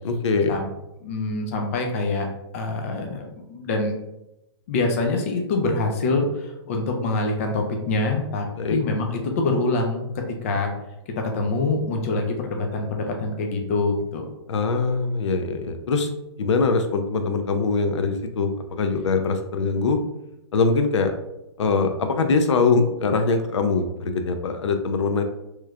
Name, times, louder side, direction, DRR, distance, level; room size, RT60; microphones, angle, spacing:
voice 1, 0.0-0.6 8.6-8.8 14.5-16.1 16.4-20.0 20.5-21.1 21.6-25.2, left 4 dB, 85° left, 7 dB, 0.5 m, -22 dB
voice 2, 1.0-2.3 2.5-3.9 4.7-10.7 11.2-14.2, left 3 dB, 30° left, 3 dB, 0.4 m, -25 dB
3.2 x 3.1 x 2.4 m, 0.90 s
hypercardioid pair, 170°, 15 cm